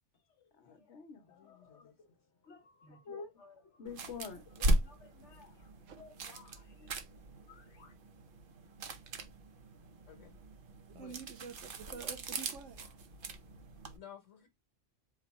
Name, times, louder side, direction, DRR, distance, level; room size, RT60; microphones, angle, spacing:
voice 1, 0.6-2.1 2.4-7.9, left 5 dB, 70° left, 1.3 m, -51 dB
voice 2, 1.3-1.9 10.1-10.3 10.9-11.2 13.9-14.5, left 9 dB, 90° left, 1.4 m, -55 dB
sound 1, 3.9-14.0, right 1 dB, 50° right, 0.8 m, -38 dB
voice 3, 10.9-12.8, right 6 dB, 85° right, 1.0 m, -48 dB
5.0 x 2.3 x 4.1 m
omnidirectional pair, 1.2 m